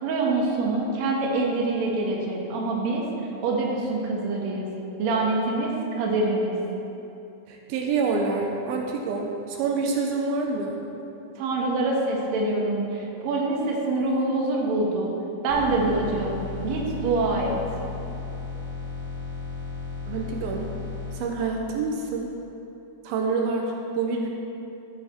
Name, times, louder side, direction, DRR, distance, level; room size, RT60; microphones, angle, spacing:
voice 1, 0.0-3.0 3.4-4.7 5.0-5.7 6.0-6.5 11.4-15.1 15.4-16.4 16.6-17.6, right 2 dB, 60° right, -2 dB, 2.2 m, -25 dB
voice 2, 7.5-10.8 20.1-20.7 21.1-22.3 23.0-24.3, right 4 dB, 80° right, 1 dB, 2.5 m, -27 dB
sound 1, 15.5-21.2, left 4 dB, 40° right, 2.2 m, -35 dB
14.0 x 7.0 x 4.3 m, 2.8 s
omnidirectional pair, 4.3 m